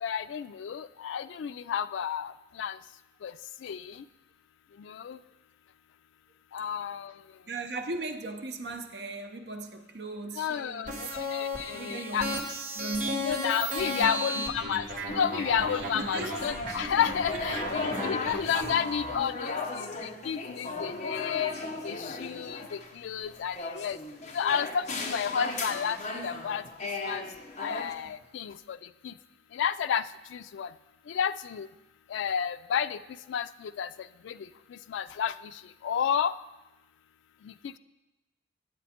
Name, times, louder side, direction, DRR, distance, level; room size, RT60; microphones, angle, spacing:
voice 1, 0.0-2.3 2.6-2.8 3.2-3.3 3.6-3.9 4.9-5.2 6.5-7.1 10.4-12.3 13.2-21.5 21.8-24.0 24.3-26.0 26.2-26.6 27.1-27.2 27.6-28.8 29.0-29.1 29.5-30.0 30.3-30.7 31.1-31.7 32.1-33.0 33.3-33.9 34.3-34.4 34.9-35.3 35.8-36.3, left 8 dB, 80° left, 13 dB, 0.3 m, -31 dB
voice 2, 7.5-11.0 11.7-12.4 12.7-13.2 13.8-14.5 15.9-16.3 17.3-17.8 20.6-20.8, right 2 dB, 65° right, 5 dB, 0.7 m, -38 dB
sound 1, 10.9-19.2, equal, 40° right, 1.1 m, -35 dB
sound 2, 16.3-27.9, left 3 dB, 35° left, 0.8 m, -36 dB
8.4 x 8.1 x 4.3 m, 1.0 s
head